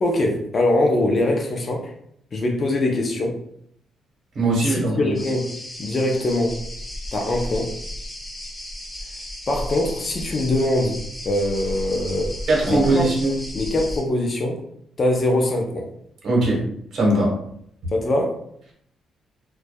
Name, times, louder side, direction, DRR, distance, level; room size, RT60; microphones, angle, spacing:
voice 1, 0.0-1.9 2.3-3.4 4.6-5.5 5.8-6.6 7.1-7.8 9.5-11.0 11.2-12.3 12.6-13.1 13.5-14.6 15.0-15.9 17.9-18.4, left 1 dB, 40° left, 1 dB, 0.5 m, -22 dB
voice 2, 4.3-5.2 12.5-13.3 16.2-16.6 16.9-17.3, right 2 dB, 60° right, -2 dB, 1.0 m, -20 dB
sound 1, 5.1-14.0, left 1 dB, 15° left, 0.9 m, -34 dB
2.5 x 2.2 x 2.2 m, 0.68 s
cardioid pair, 90°, 0 cm